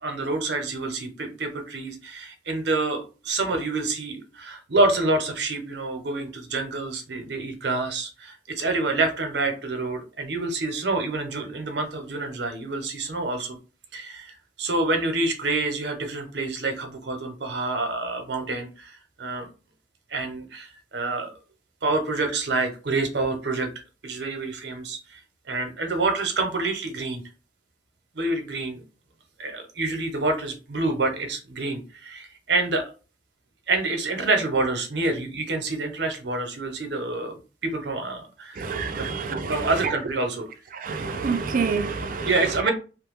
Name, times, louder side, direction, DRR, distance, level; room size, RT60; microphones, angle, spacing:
voice 1, 0.0-13.6 13.9-19.5 20.1-21.3 21.8-23.7 24.0-25.2 25.5-27.2 28.2-28.8 29.4-32.9 33.7-38.7 38.9-39.0 39.5-40.5 42.3-42.7, right 2 dB, 65° right, 0.8 m, -27 dB
voice 2, 38.6-39.7 40.7-42.3, right 5 dB, 50° right, 0.4 m, -28 dB
3.0 x 2.2 x 3.5 m
head